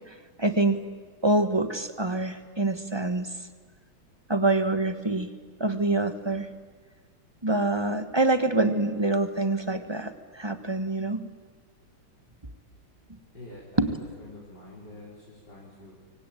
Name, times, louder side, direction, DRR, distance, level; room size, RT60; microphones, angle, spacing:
voice 1, 0.4-0.8 1.2-3.3 4.3-5.3 5.6-6.5 7.4-11.2 13.8-13.9, right 2 dB, 15° right, 9 dB, 1.2 m, -25 dB
voice 2, 13.3-15.9, left 2 dB, 55° left, -6 dB, 5.5 m, -46 dB
25.0 x 24.5 x 9.2 m, 1.5 s
omnidirectional pair, 2.1 m